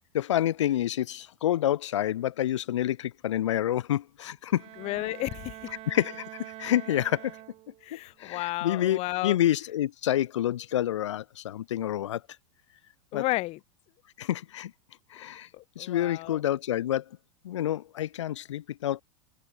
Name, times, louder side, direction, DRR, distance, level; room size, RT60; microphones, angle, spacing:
voice 1, 0.1-4.6 5.9-7.3 8.2-12.2 13.1-13.2 14.2-14.7 15.1-15.5 15.8-17.0 17.4-19.0, left 12 dB, 90° left, 0.8 m, -28 dB
Bowed string instrument, 4.5-8.0, right 17 dB, 40° right, 2.6 m, -45 dB
voice 2, 4.8-5.7 7.8-9.4 13.1-13.6 15.5-16.4, left 19 dB, 45° left, 3.6 m, -32 dB
supercardioid pair, 125°, 15 cm